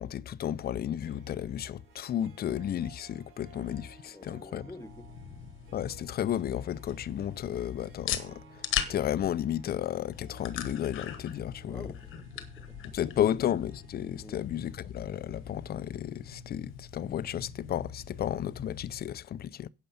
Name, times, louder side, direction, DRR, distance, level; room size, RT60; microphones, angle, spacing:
voice 1, 0.0-4.6 5.7-8.4 8.9-11.9 12.9-19.7, left 10 dB, 50° left, 0.5 m, -33 dB
Harp, 0.7-17.5, right 8 dB, 85° right, 1.7 m, -59 dB
voice 2, 4.1-5.2 11.6-13.3 14.2-14.4, left 2 dB, 15° left, 1.0 m, -49 dB
sound 1, 4.7-19.0, left 9 dB, 90° left, 1.2 m, -41 dB
10.5 x 6.6 x 5.7 m
cardioid pair, 90°, 20 cm